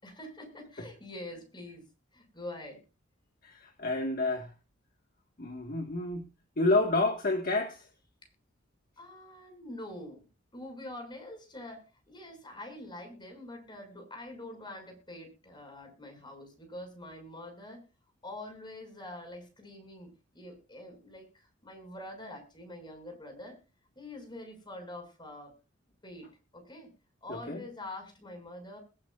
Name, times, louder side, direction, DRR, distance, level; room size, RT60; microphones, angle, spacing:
voice 1, 0.0-2.8 9.0-10.2 10.5-17.8 18.2-23.6 23.9-25.5 26.0-26.9 27.2-28.8, left 1 dB, 25° left, 6.7 m, -45 dB
voice 2, 3.4-4.5 5.4-6.3 6.6-7.9 27.3-27.6, left 2 dB, 50° left, 1.8 m, -29 dB
21.0 x 9.9 x 2.6 m
head